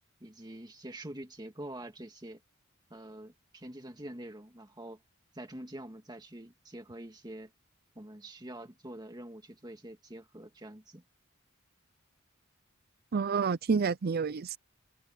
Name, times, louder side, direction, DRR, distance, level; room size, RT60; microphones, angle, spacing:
voice 1, 0.2-2.4 2.9-5.0 5.3-7.5 8.0-11.0, right 1 dB, 20° right, 2.1 m, -45 dB
voice 2, 13.1-14.6, right 5 dB, 50° right, 0.5 m, -29 dB
head